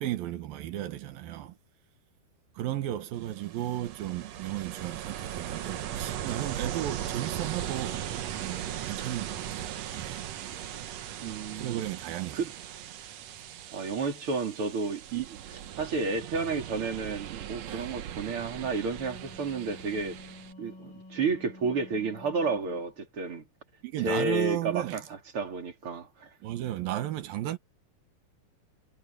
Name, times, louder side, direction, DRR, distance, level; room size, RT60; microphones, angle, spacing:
voice 1, 0.0-1.5 2.6-8.1 8.4-10.3 11.6-12.4 17.7-17.8 23.8-25.0 26.4-27.6, right 13 dB, 85° right, 3.0 m, -34 dB
Ocean, 3.1-20.5, right 10 dB, 65° right, 1.8 m, -38 dB
voice 2, 11.2-11.8 12.3-12.5 13.7-20.3 20.6-23.5 24.0-26.3, right 4 dB, 40° right, 3.8 m, -31 dB
Wind instrument woodwind instrument, 18.7-22.9, left 2 dB, 80° left, 7.6 m, -50 dB
omnidirectional pair, 4.1 m